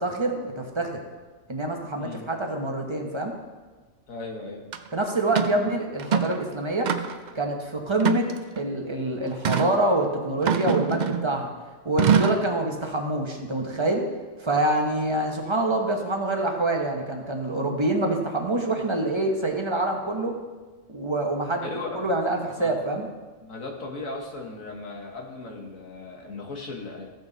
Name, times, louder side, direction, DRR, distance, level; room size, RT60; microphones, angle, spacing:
voice 1, 0.0-1.0 1.5-3.3 4.9-6.9 7.3-8.3 8.6-11.5 11.8-14.1 14.4-20.4 20.9-21.7 21.9-23.1, right 2 dB, 25° right, 2 dB, 1.0 m, -26 dB
voice 2, 4.1-4.6 21.6-22.1 22.6-22.8 23.4-27.1, left 3 dB, 75° left, 1 dB, 1.8 m, -37 dB
sound 1, 4.7-4.8 5.4-5.6 6.0-6.4 6.9-7.3 8.0-8.7 9.4-9.7 10.5-11.3 12.0-12.5, right 7 dB, 65° right, 0.4 m, -24 dB
15.0 x 6.2 x 4.0 m, 1.3 s
omnidirectional pair, 1.4 m